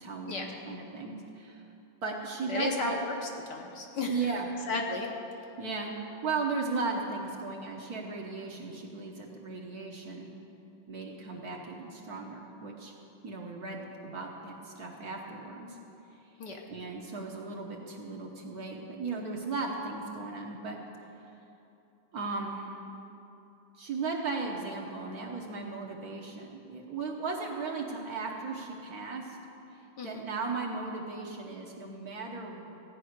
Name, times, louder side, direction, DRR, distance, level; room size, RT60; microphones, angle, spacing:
voice 1, 0.0-1.6 2.0-3.0 4.1-4.5 5.6-5.9 6.2-10.3 10.9-12.9 13.2-15.8 16.7-20.8 22.1-22.8 23.8-29.4 29.7-32.7, right 4 dB, 50° right, -1 dB, 1.4 m, -36 dB
voice 2, 2.5-3.1 3.5-4.1 4.7-5.1 16.4-16.6 30.0-30.2, left 3 dB, 60° left, 1 dB, 1.4 m, -34 dB
15.0 x 5.5 x 9.5 m, 2.9 s
omnidirectional pair, 2.3 m